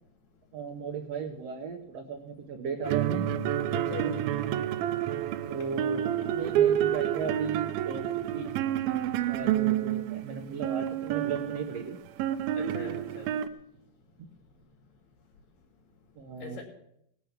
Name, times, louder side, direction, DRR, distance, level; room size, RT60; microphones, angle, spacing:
voice 1, 0.5-3.3 5.5-8.5 9.3-12.0 14.2-14.3 16.2-16.6, right 5 dB, 65° right, 3 dB, 1.6 m, -36 dB
voice 2, 2.7-3.1 3.7-4.2 12.6-13.3 16.4-16.6, left 6 dB, 70° left, -1 dB, 3.9 m, -41 dB
sound 1, 2.8-13.5, right 11 dB, 85° right, 2.6 m, -29 dB
18.5 x 7.6 x 7.1 m, 0.75 s
omnidirectional pair, 4.1 m